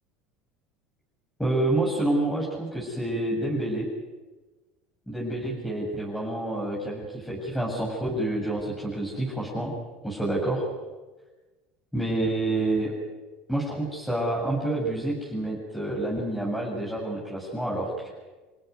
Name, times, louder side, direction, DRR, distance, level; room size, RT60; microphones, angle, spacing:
voice 1, 1.4-3.9 5.1-9.7 10.0-10.7 11.9-12.9 13.5-18.1, right 1 dB, 5° left, -4 dB, 7.5 m, -28 dB
29.0 x 16.5 x 9.7 m, 1.2 s
supercardioid pair, 115°, 0 cm